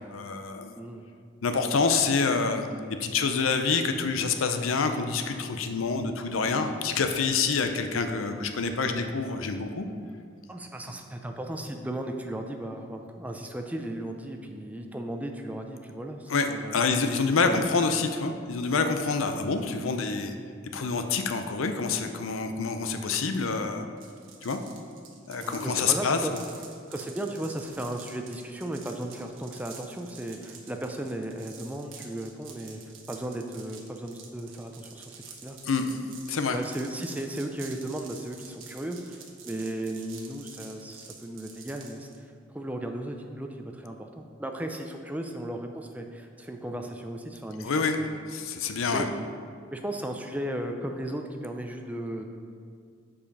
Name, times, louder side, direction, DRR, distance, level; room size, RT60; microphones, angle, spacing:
voice 1, 0.1-0.7 1.4-2.7 3.0-9.9 16.3-20.3 20.7-23.9 24.4-24.6 25.3-26.2 35.6-36.0 36.3-36.6 47.6-48.0 48.3-49.1, left 4 dB, 90° left, 7 dB, 0.6 m, -27 dB
voice 2, 0.8-1.1 10.5-16.8 17.4-17.6 25.4-26.3 26.9-32.8 33.1-35.6 36.5-48.1 48.9-49.1 49.7-52.3, right 1 dB, 10° right, 4 dB, 0.4 m, -36 dB
sound 1, 24.0-42.2, right 6 dB, 80° right, 1.1 m, -48 dB
7.3 x 5.0 x 5.3 m, 2.2 s
head